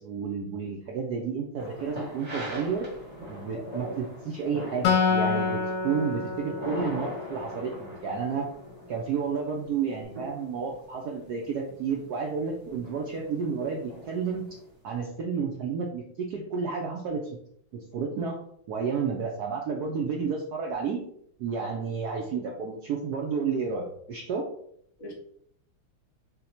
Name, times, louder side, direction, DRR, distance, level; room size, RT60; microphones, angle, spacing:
voice 1, 0.0-2.9 3.3-8.5 8.9-14.5 14.8-17.2 17.7-18.4 18.7-21.0 21.4-24.4, right 5 dB, 80° right, 0 dB, 0.8 m, -31 dB
sound 1, 1.6-14.7, equal, 30° right, 0.7 m, -42 dB
voice 2, 3.5-3.9 21.5-21.6 25.0-25.1, right 1 dB, 45° left, -3 dB, 0.5 m, -39 dB
Acoustic guitar, 4.8-8.3, left 5 dB, 70° left, 1.3 m, -28 dB
3.9 x 2.1 x 4.2 m, 0.69 s
omnidirectional pair, 2.3 m